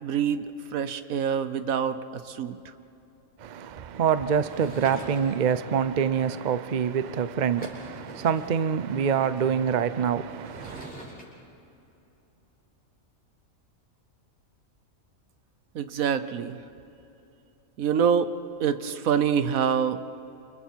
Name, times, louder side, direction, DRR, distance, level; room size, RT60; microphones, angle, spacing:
voice 1, 0.0-2.6 15.7-16.6 17.8-18.3 18.6-20.0, right 7 dB, 75° right, 1.3 m, -26 dB
voice 2, 3.4-10.9, right 7 dB, 45° right, 0.6 m, -26 dB
Sliding door / Wood, 4.3-5.6 7.1-7.2 7.4-8.5 10.3-11.2, right 1 dB, 5° left, 6.2 m, -43 dB
29.0 x 28.5 x 4.6 m
omnidirectional pair, 1.5 m